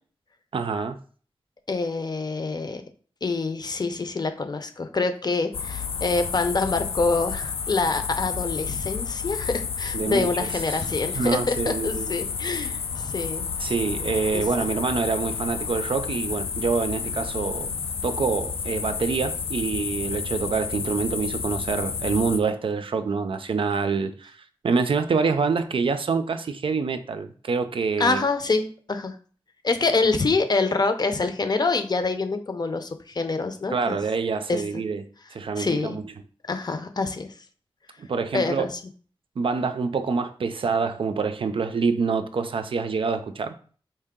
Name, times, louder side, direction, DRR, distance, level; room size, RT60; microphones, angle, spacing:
voice 1, 0.5-1.0 9.9-10.8 11.1-12.1 13.6-17.7 18.0-24.4 24.6-28.2 33.7-35.0 35.3-36.1 38.0-38.7 39.4-43.5, right 5 dB, 70° right, 0.4 m, -26 dB
voice 2, 1.7-2.8 3.2-13.5 14.3-14.7 28.0-29.2 29.6-34.0 34.5-34.8 35.6-36.0 36.5-37.3 38.3-38.7, left 3 dB, 45° left, 0.6 m, -26 dB
sound 1, 5.5-22.4, left 6 dB, 90° left, 0.4 m, -31 dB
4.6 x 2.7 x 3.6 m
wide cardioid pair, 95°, 9 cm